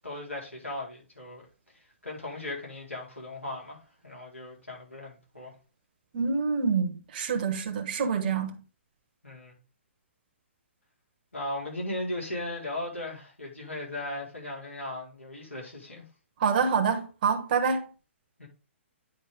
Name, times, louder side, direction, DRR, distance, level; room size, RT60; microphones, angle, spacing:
voice 1, 0.0-1.5 2.0-3.8 4.0-5.5 9.2-9.6 11.3-16.0 18.4-18.5, left 1 dB, 85° left, 4.2 m, -37 dB
voice 2, 6.1-8.5 16.4-17.9, right 5 dB, 40° right, 1.2 m, -26 dB
9.2 x 4.9 x 3.6 m
figure-of-eight pair, 125°, 7 cm